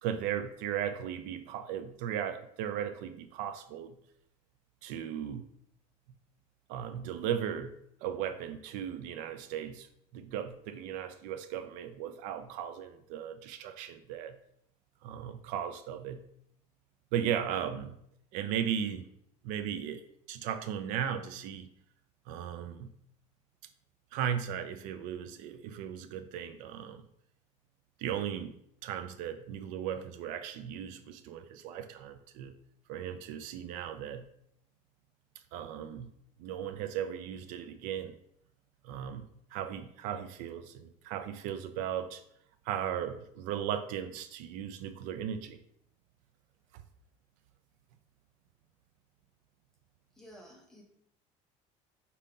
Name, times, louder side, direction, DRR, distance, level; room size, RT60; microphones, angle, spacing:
voice 1, 0.0-3.9 4.8-5.5 6.7-9.9 10.1-14.4 15.0-16.2 17.1-18.0 18.3-19.1 19.4-20.0 20.3-21.7 22.3-22.9 24.1-27.0 28.0-28.5 28.8-32.5 32.9-34.3 35.5-36.1 36.4-38.1 38.8-42.2 42.7-45.6 46.7-46.8, right 9 dB, 65° right, 9 dB, 0.4 m, -36 dB
voice 2, 50.2-50.8, equal, 5° left, -2 dB, 0.7 m, -53 dB
5.0 x 2.8 x 3.6 m, 0.72 s
cardioid pair, 175°, 14 cm